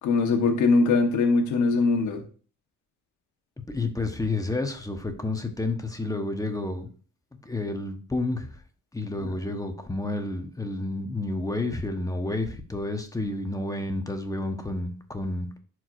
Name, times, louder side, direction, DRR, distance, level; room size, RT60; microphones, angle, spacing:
voice 1, 0.0-2.2 9.2-9.3, left 3 dB, 75° left, 3 dB, 1.3 m, -22 dB
voice 2, 3.7-6.9 7.4-8.5 8.9-15.5, left 2 dB, 10° left, 6 dB, 1.1 m, -30 dB
10.5 x 4.7 x 2.6 m, 0.40 s
cardioid pair, 90°, 30 cm